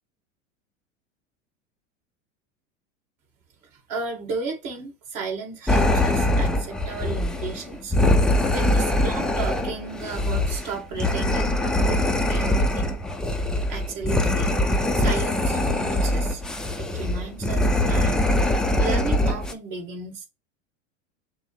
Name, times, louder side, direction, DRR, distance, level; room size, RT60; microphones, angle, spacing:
voice 1, 3.7-8.0 8.5-11.6 11.9-12.9 13.7-14.6 14.9-16.4 16.8-18.2 18.8-20.3, right 4 dB, 55° right, 2.3 m, -34 dB
sound 1, 5.7-19.5, left 1 dB, ahead, 0.4 m, -23 dB
6.1 x 2.1 x 3.1 m
hypercardioid pair, 100°, 38 cm